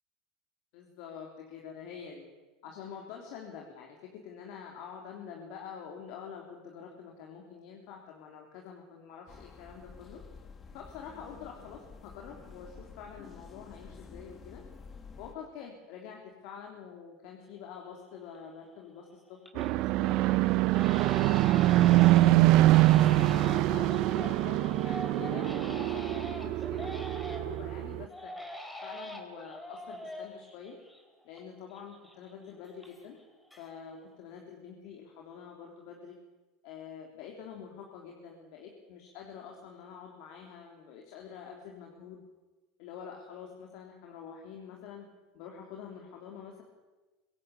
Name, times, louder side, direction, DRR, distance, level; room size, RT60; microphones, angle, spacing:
voice 1, 0.7-2.2 2.6-10.2 10.7-14.6 15.2-22.1 22.9-28.3 28.8-30.8 31.2-33.2 33.6-36.2 36.6-42.2 42.8-45.1 45.3-46.6, left 7 dB, 65° left, 1 dB, 3.5 m, -46 dB
sound 1, 9.3-15.3, left 5 dB, 30° left, 2.1 m, -50 dB
Crying sobbing, 17.5-17.6 18.1-18.6 19.0-19.8 20.1-20.3 20.7-27.6 28.1-31.4 31.7-33.2 33.5-34.0, left 1 dB, 5° left, 3.8 m, -44 dB
sound 2, 19.6-28.0, right 16 dB, 55° right, 0.7 m, -24 dB
24.0 x 16.5 x 8.4 m, 1.2 s
supercardioid pair, 120°, 0 cm